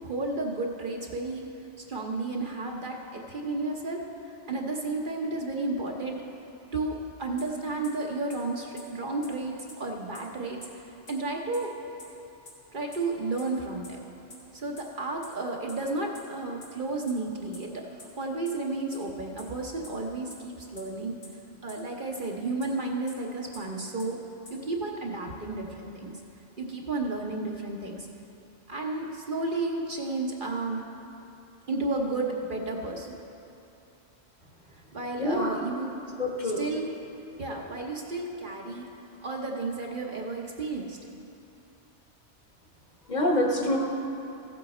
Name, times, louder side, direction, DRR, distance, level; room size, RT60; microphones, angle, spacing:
voice 1, 0.0-1.4 1.9-6.2 6.7-11.7 12.7-14.0 14.5-21.2 21.6-24.2 24.5-26.2 26.6-28.1 28.7-30.8 31.7-33.2 34.9-35.9 36.6-36.9 37.4-38.9 39.2-41.0, right 2 dB, 50° right, 0 dB, 1.0 m, -32 dB
sound 1, 7.4-7.5 7.8-7.9 8.3-8.4 8.8-8.9 9.2-9.3 9.7-9.8 10.1-10.2 10.6-10.7 11.1-11.2 11.5-11.6 12.0-12.1 12.5-12.6 12.9-13.0 13.4-13.5 13.8-13.9 14.3-14.4 14.8-14.9 15.2-15.3 15.7-15.8 16.1-16.2 16.6-16.7 17.1-17.2 17.5-17.6 18.0-18.1 18.5-18.6 18.9-19.0 19.4-19.5 19.8-19.9 20.3-20.4 20.8-20.9 21.2-21.3 21.7-21.8 22.1-22.2 22.6-22.7 23.1-23.2 23.5-23.6 24.0-24.1 24.5-24.6, left 3 dB, 75° left, 2.0 m, -45 dB
voice 2, 35.2-35.5 36.2-36.6 43.1-43.8, left 1 dB, 40° left, -1 dB, 1.2 m, -26 dB
15.5 x 7.8 x 4.2 m, 2.8 s
omnidirectional pair, 1.2 m